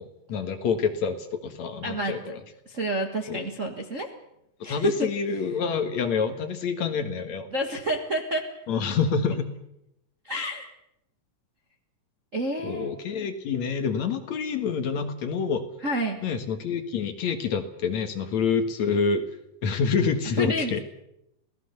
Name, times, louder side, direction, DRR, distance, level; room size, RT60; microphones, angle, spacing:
voice 1, 0.0-2.4 3.3-3.5 4.6-7.5 8.7-9.5 12.6-15.6 16.2-19.3 19.6-20.8, left 5 dB, 60° left, 7 dB, 2.7 m, -27 dB
voice 2, 1.8-2.3 2.7-4.1 4.6-5.1 7.5-8.5 10.2-10.7 12.3-12.9 15.8-16.2 20.4-20.8, right 1 dB, 35° right, 3 dB, 1.2 m, -29 dB
27.0 x 18.0 x 6.9 m, 0.83 s
omnidirectional pair, 3.8 m